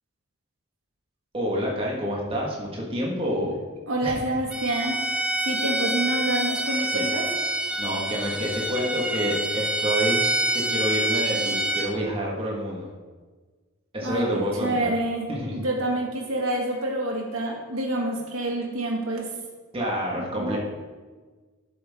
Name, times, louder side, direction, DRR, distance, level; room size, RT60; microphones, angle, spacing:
voice 1, 1.3-3.6 4.0-4.2 6.9-7.0 7.8-10.3 10.5-12.9 13.9-15.0 15.3-15.6 19.7-20.6, equal, 25° right, -3 dB, 1.6 m, -28 dB
voice 2, 3.9-7.3 14.0-19.3 20.4-20.6, right 1 dB, 65° right, 0 dB, 1.9 m, -28 dB
Bowed string instrument, 4.5-11.9, right 1 dB, 5° right, 0.6 m, -27 dB
11.5 x 7.6 x 3.6 m, 1.4 s
head